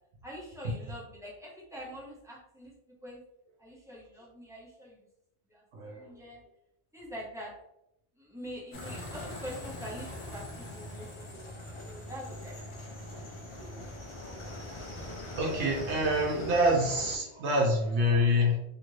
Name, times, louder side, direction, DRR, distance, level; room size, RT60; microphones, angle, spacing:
voice 1, 0.2-3.2 3.6-5.1 5.5-6.4 6.9-7.5 8.2-11.3 11.8-13.6, equal, 5° right, -5 dB, 0.7 m, -45 dB
voice 2, 5.7-6.1 13.6-13.7 15.0-18.6, left 1 dB, 80° right, 0 dB, 0.9 m, -27 dB
sound 1, 8.7-17.2, left 1 dB, 45° left, 0.4 m, -42 dB
2.7 x 2.6 x 3.0 m, 0.80 s
omnidirectional pair, 1.2 m